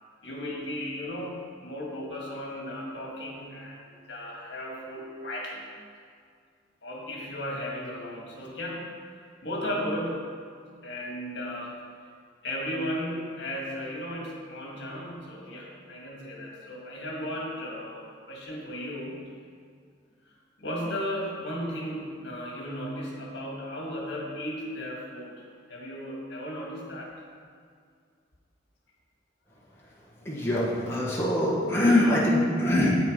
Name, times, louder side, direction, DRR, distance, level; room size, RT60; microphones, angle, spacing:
voice 1, 0.2-5.7 6.8-8.9 9.4-10.3 10.8-11.8 12.4-19.2 20.2-20.3 20.6-27.1 30.1-30.3, equal, 60° left, -2 dB, 1.9 m, -35 dB
voice 2, 30.2-33.0, left 1 dB, 15° left, -7 dB, 1.4 m, -23 dB
8.4 x 7.0 x 5.2 m, 2.2 s
head